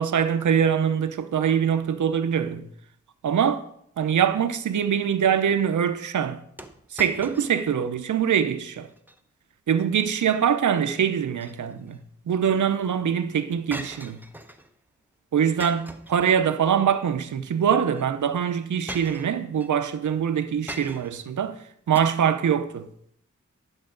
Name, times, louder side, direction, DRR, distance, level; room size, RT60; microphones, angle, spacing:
voice 1, 0.0-2.7 3.2-3.6 4.0-6.4 6.9-8.9 9.7-12.0 12.3-14.2 15.3-21.5 21.9-23.1, right 8 dB, 80° right, 0.7 m, -23 dB
sound 1, 6.6-7.8 8.1-8.2 8.8-9.2 11.1-12.0 13.7-14.7 15.6-16.8 17.9-18.0 18.9-19.7 20.7-21.3 21.9-22.0, right 1 dB, 5° right, 0.7 m, -40 dB
11.0 x 6.3 x 3.8 m
cardioid pair, 70°, 30 cm